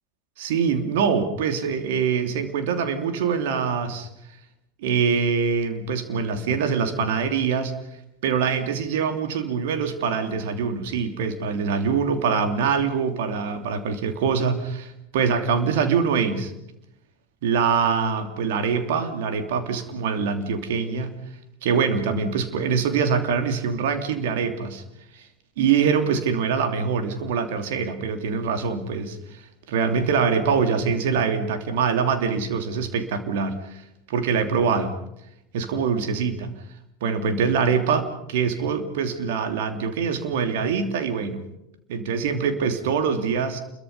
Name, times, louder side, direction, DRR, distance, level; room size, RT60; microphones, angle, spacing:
voice 1, 0.4-4.1 4.8-7.7 8.2-16.5 17.4-21.1 21.6-24.8 25.1-25.2 25.6-29.2 29.7-33.8 34.1-34.9 35.5-36.5 37.0-41.5 41.9-43.6, right 6 dB, 65° right, 7 dB, 3.0 m, -24 dB
29.0 x 22.5 x 5.5 m, 0.82 s
figure-of-eight pair, 80°, 0 cm